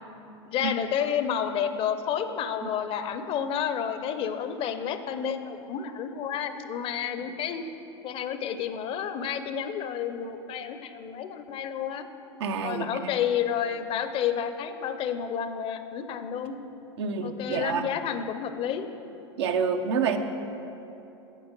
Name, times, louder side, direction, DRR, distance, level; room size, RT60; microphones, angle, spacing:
voice 1, 0.4-7.6 8.0-12.1 12.6-16.6 17.2-18.9, left 8 dB, 40° left, 10 dB, 0.6 m, -30 dB
voice 2, 12.4-13.1 17.0-17.9 19.4-20.2, right 6 dB, 75° right, 6 dB, 0.7 m, -28 dB
9.1 x 7.1 x 5.3 m, 3.0 s
hypercardioid pair, 95°, 14 cm